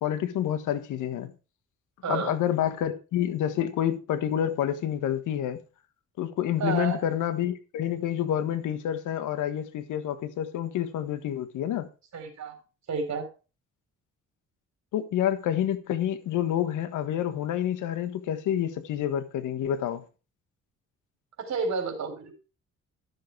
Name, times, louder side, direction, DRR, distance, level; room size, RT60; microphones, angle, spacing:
voice 1, 0.0-1.3 2.1-5.6 6.2-11.9 14.9-20.0, left 10 dB, 85° left, 1.4 m, -28 dB
voice 2, 2.0-2.3 6.6-7.0 12.1-12.5 12.9-13.3 21.4-22.3, right 5 dB, 60° right, 4.0 m, -30 dB
12.5 x 6.7 x 4.6 m
cardioid pair, 90°, 30 cm